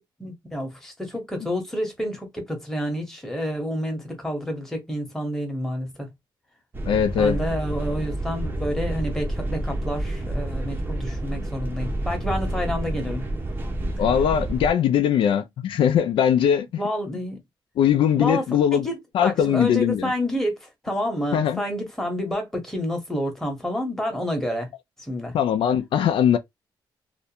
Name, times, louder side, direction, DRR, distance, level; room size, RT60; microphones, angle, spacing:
voice 1, 0.2-6.1 7.2-13.3 16.8-17.4 18.1-18.4 18.7-24.7 25.0-25.3, equal, 5° left, 0.9 m, -29 dB
sound 1, 6.7-14.7, right 1 dB, 25° right, 0.6 m, -29 dB
voice 2, 6.9-7.4 14.0-16.7 17.8-18.9 19.1-20.1 21.3-21.6 25.3-26.4, left 9 dB, 80° left, 0.3 m, -20 dB
2.4 x 2.1 x 2.7 m
wide cardioid pair, 150°, 9 cm